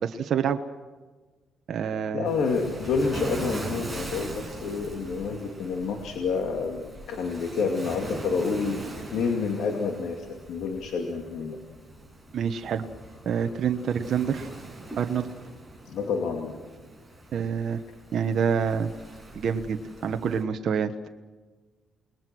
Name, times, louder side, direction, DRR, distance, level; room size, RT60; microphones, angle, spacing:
voice 1, 0.0-0.6 1.7-2.3 12.3-12.8 13.2-14.5 15.0-15.3 17.3-17.8 18.1-18.9 19.3-20.9, right 7 dB, 60° right, 6 dB, 1.2 m, -27 dB
voice 2, 2.1-6.8 7.1-8.8 9.1-11.6 15.8-16.6, left 5 dB, 75° left, 2 dB, 2.6 m, -28 dB
Waves surf, 2.2-20.4, right 1 dB, ahead, 7.4 m, -41 dB
29.0 x 21.0 x 6.2 m, 1.3 s
cardioid pair, 90°, 0 cm